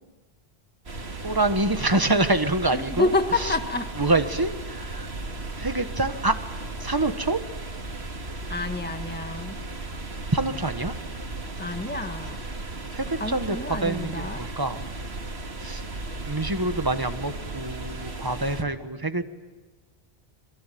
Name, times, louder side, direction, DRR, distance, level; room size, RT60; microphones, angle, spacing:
sound 1, 0.9-18.6, right 2 dB, 90° right, 2.4 m, -35 dB
voice 1, 1.2-3.1 3.4-3.6 4.0-5.1 5.6-6.4 6.8-7.4 10.3-10.9 12.9-14.8 15.6-15.8 16.3-19.2, right 2 dB, 20° right, 8 dB, 1.4 m, -26 dB
voice 2, 2.7-3.9 8.5-9.5 11.6-12.4 13.2-14.4, left 3 dB, 10° left, 6 dB, 1.6 m, -28 dB
27.0 x 23.0 x 9.3 m, 1.4 s
omnidirectional pair, 1.0 m